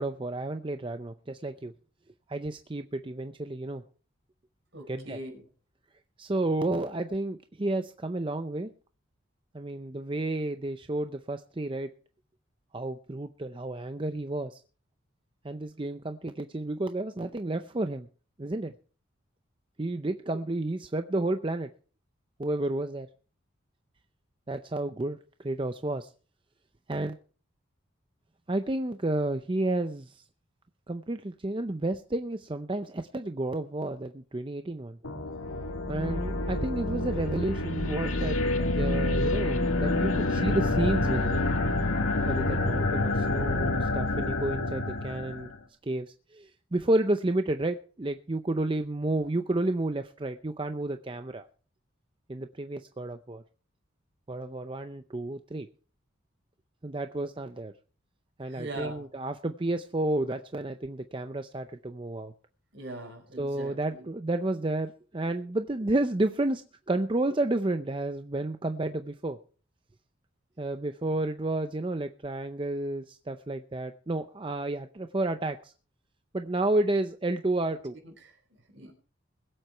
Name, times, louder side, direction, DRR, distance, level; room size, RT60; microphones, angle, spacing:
voice 1, 0.0-1.7 2.3-3.8 4.9-5.2 6.2-8.7 9.5-11.9 12.7-14.6 15.4-18.1 18.4-18.7 19.8-21.7 22.4-23.1 24.5-25.2 25.4-26.1 26.9-27.2 28.5-30.2 30.9-35.0 35.9-41.4 42.3-45.5 45.8-51.5 52.3-53.4 54.3-55.7 56.8-57.7 58.4-62.3 63.4-66.6 66.9-69.4 70.6-75.7 76.3-77.9, right 2 dB, 25° right, 8 dB, 0.6 m, -31 dB
voice 2, 4.7-5.4 58.4-59.1 62.7-64.1 77.6-77.8 78.0-78.9, right 1 dB, 60° right, 3 dB, 4.9 m, -42 dB
sound 1, 35.0-45.6, left 2 dB, 90° left, 1.9 m, -28 dB
21.0 x 7.9 x 4.5 m, 0.40 s
head